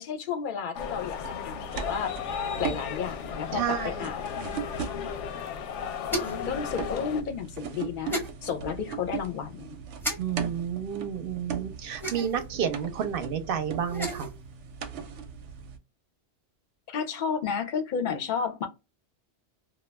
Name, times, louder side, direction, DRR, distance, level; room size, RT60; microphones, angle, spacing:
voice 1, 0.0-2.1 2.6-4.3 6.4-9.8 16.9-18.7, left 6 dB, 55° left, 0.6 m, -32 dB
sound 1, 0.7-7.2, left 7 dB, 90° left, 0.9 m, -35 dB
sound 2, 1.2-5.3 6.3-15.8, right 7 dB, 90° right, 0.9 m, -39 dB
voice 2, 3.5-4.1 10.2-14.3, right 8 dB, 60° right, 0.7 m, -30 dB
sound 3, 6.1-6.5 8.1-8.3 10.0-10.2 12.0-12.5 13.8-14.3, equal, ahead, 0.6 m, -32 dB
2.3 x 2.2 x 3.1 m
omnidirectional pair, 1.2 m